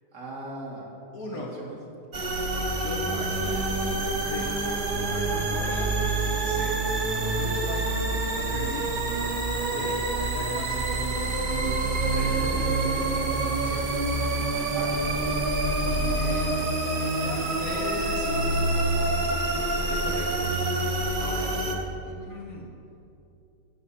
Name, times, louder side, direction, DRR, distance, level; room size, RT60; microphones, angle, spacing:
voice 1, 0.1-0.9 1.3-1.8 12.0-13.4 14.7-15.4 21.5-21.6, right 2 dB, 90° right, -5 dB, 2.5 m, -38 dB
voice 2, 1.1-1.5 2.8-3.6 4.2-4.5 5.1-6.0 6.4-6.8 7.4-7.9 8.3-9.0 9.7-10.0 10.3-11.0 13.6-13.9 15.8-16.6 17.2-18.4 19.9-20.4 21.2-21.5 22.0-22.7, left 2 dB, 65° left, -3 dB, 1.6 m, -38 dB
sound 1, 2.1-21.7, right 2 dB, 35° right, 1.0 m, -27 dB
12.5 x 4.3 x 8.3 m, 2.7 s
omnidirectional pair, 1.7 m